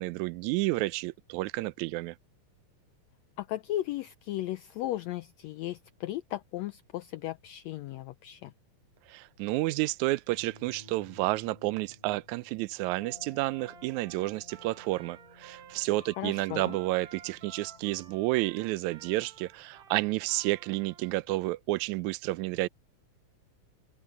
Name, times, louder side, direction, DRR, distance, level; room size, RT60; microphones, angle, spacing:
voice 1, 0.0-2.2 9.1-22.7, right 19 dB, 80° right, 1.8 m, -30 dB
voice 2, 3.4-8.5 16.2-16.8, left 14 dB, 90° left, 1.5 m, -36 dB
Bowed string instrument, 10.3-13.3, equal, 10° left, 7.3 m, -56 dB
sound 1, 13.0-18.2, left 4 dB, 50° left, 4.8 m, -56 dB
Trumpet, 13.4-21.2, right 7 dB, 60° right, 2.7 m, -54 dB
omnidirectional pair, 3.7 m